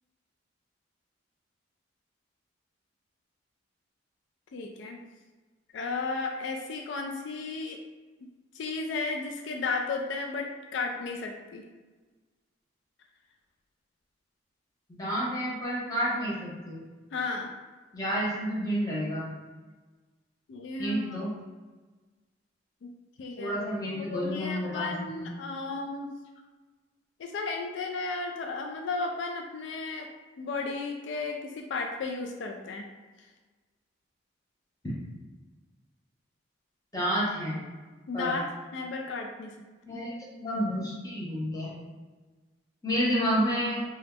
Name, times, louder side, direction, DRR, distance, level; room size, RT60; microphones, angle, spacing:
voice 1, 4.5-5.0 5.7-7.8 8.5-11.7 17.1-17.5 20.5-21.2 22.8-22.9 23.2-23.6 23.9-26.1 27.2-30.1 30.4-32.9 38.1-39.6 39.9-40.0, left 3 dB, 75° left, 3 dB, 0.3 m, -34 dB
voice 2, 14.9-16.8 17.9-19.3 20.8-21.3 23.4-25.2 36.9-37.6 38.1-38.4 39.9-41.8 42.8-43.8, equal, 20° left, -6 dB, 0.8 m, -30 dB
2.9 x 2.3 x 3.4 m, 1.3 s
head